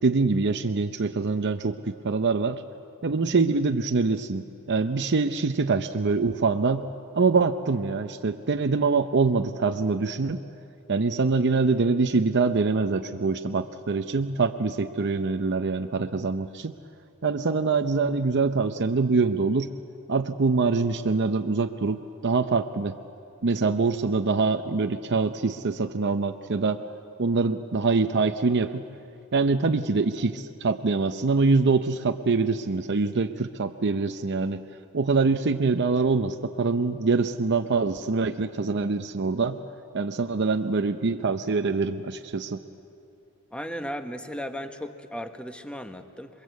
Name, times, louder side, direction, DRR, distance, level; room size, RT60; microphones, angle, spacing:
voice 1, 0.0-2.6 3.0-6.8 7.1-10.4 10.9-16.7 17.2-19.7 20.1-23.0 23.4-26.8 27.2-28.8 29.3-34.6 34.9-39.6 39.9-42.6, right 4 dB, 50° right, 7 dB, 0.7 m, -24 dB
voice 2, 43.5-46.4, equal, 5° left, 7 dB, 1.1 m, -36 dB
29.0 x 22.5 x 8.2 m, 2.7 s
head